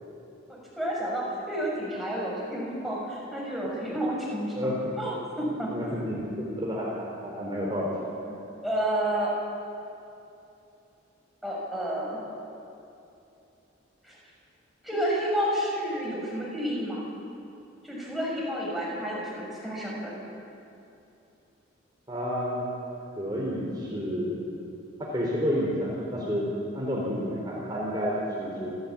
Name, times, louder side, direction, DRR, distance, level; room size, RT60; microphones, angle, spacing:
voice 1, 0.5-4.6 5.0-5.7 8.6-9.3 11.4-12.2 14.0-14.1 14.8-17.0 17.8-20.1, right 1 dB, ahead, -5 dB, 6.4 m, -30 dB
voice 2, 4.6-4.9 5.7-6.9 7.2-8.0 8.2-8.3 22.1-22.6 23.2-24.4 25.0-26.5 26.7-28.7, equal, 20° right, -5 dB, 4.0 m, -30 dB
28.5 x 14.5 x 8.7 m, 2.7 s
head